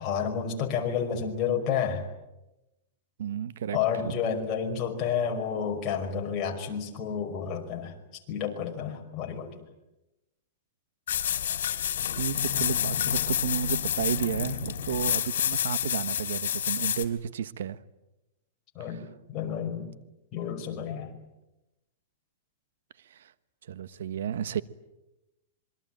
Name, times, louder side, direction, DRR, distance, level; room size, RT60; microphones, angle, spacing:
voice 1, 0.0-2.0 3.7-9.6 18.8-19.9 20.3-21.2, left 7 dB, 30° left, 2 dB, 5.2 m, -30 dB
voice 2, 3.2-3.8 4.0-4.1 12.0-17.8 18.9-19.0 23.1-23.3 23.7-24.6, right 8 dB, 80° right, 15 dB, 1.2 m, -32 dB
sound 1, 11.1-17.1, left 10 dB, 80° left, 3.1 m, -29 dB
26.5 x 23.5 x 9.0 m, 0.97 s
supercardioid pair, 155°, 0 cm